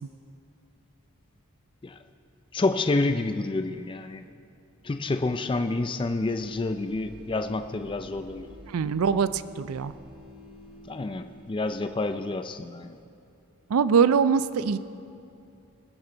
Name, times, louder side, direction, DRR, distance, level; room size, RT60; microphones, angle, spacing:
voice 1, 2.5-4.2 4.8-8.5 10.9-13.0, left 2 dB, 25° left, 8 dB, 0.4 m, -28 dB
sound 1, 6.4-12.2, equal, 10° right, 2.3 m, -49 dB
voice 2, 8.7-9.9 13.7-14.8, right 6 dB, 85° right, 15 dB, 0.4 m, -23 dB
20.0 x 9.0 x 3.9 m, 2.6 s
head